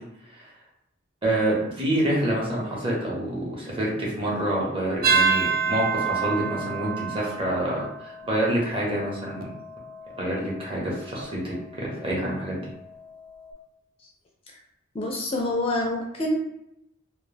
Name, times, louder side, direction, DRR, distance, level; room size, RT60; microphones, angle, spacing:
voice 1, 1.2-9.4 10.2-12.7, right 1 dB, 25° right, -5 dB, 0.8 m, -27 dB
sound 1, 5.0-13.5, right 5 dB, 45° right, 0.3 m, -30 dB
voice 2, 14.9-16.3, left 1 dB, 30° left, -1 dB, 0.4 m, -26 dB
2.3 x 2.2 x 3.2 m, 0.80 s
head